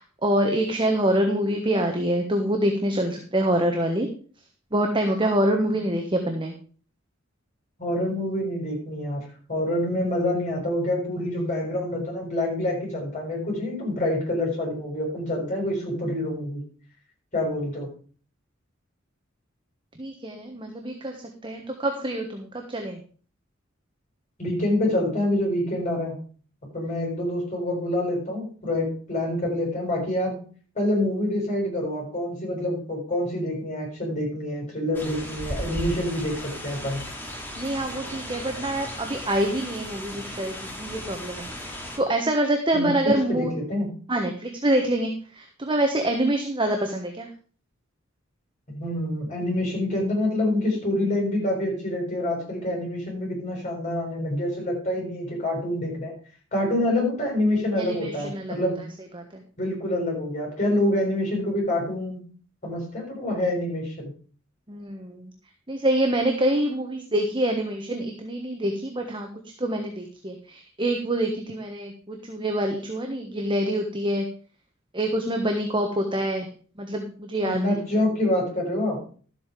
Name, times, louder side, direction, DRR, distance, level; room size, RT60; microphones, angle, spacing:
voice 1, 0.0-4.1 4.7-6.6 20.0-23.0 37.5-43.5 44.1-47.3 57.8-58.7 59.1-59.4 64.7-65.3 65.7-69.3 69.6-74.3 74.9-76.5 76.8-77.6, right 1 dB, 25° right, 3 dB, 1.3 m, -26 dB
voice 2, 7.8-16.6 17.3-17.9 24.4-26.2 26.7-30.3 30.7-37.0 42.7-42.9 43.3-43.9 48.7-56.1 56.5-58.8 59.6-62.2 62.6-64.1 77.4-79.0, left 1 dB, 35° left, 0 dB, 6.0 m, -26 dB
sound 1, 34.9-42.0, equal, 10° left, 2.3 m, -36 dB
12.5 x 8.0 x 5.1 m, 0.42 s
head